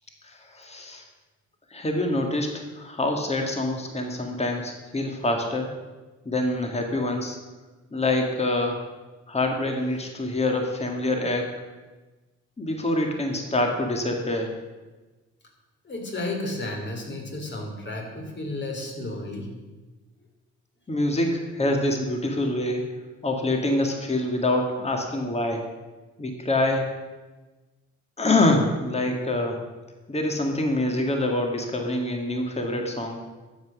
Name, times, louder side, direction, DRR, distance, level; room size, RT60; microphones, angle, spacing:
voice 1, 0.2-1.0 1.7-5.7 6.3-7.4 7.9-8.8 9.3-11.5 12.6-14.5 20.9-22.9 23.2-25.6 26.2-26.9 28.2-29.6 30.1-33.2, left 1 dB, 20° left, 3 dB, 2.0 m, -25 dB
voice 2, 15.8-19.5, left 2 dB, 35° left, 2 dB, 3.4 m, -32 dB
12.0 x 8.2 x 6.3 m, 1.2 s
cardioid pair, 90°, 30 cm